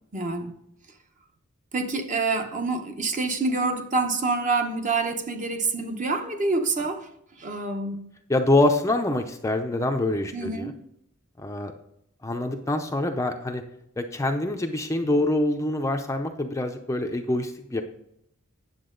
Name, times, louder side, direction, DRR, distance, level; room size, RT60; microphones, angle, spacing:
voice 1, 0.1-0.5 1.7-7.1 7.4-8.0 10.3-10.7, right 3 dB, 35° right, 0.9 m, -27 dB
voice 2, 8.3-10.7 11.4-11.7 12.2-13.6 14.0-17.8, left 2 dB, 15° left, 0.6 m, -25 dB
9.7 x 7.3 x 3.8 m
head